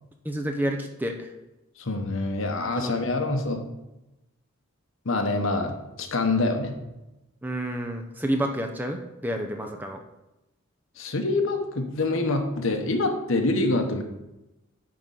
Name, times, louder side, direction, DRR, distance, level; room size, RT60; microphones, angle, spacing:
voice 1, 0.2-1.3 2.6-3.0 7.4-10.0, right 1 dB, 10° right, 3 dB, 0.6 m, -29 dB
voice 2, 1.8-3.6 5.0-6.7 11.0-14.0, left 2 dB, 65° left, 5 dB, 1.0 m, -26 dB
9.6 x 3.8 x 5.5 m, 0.97 s
head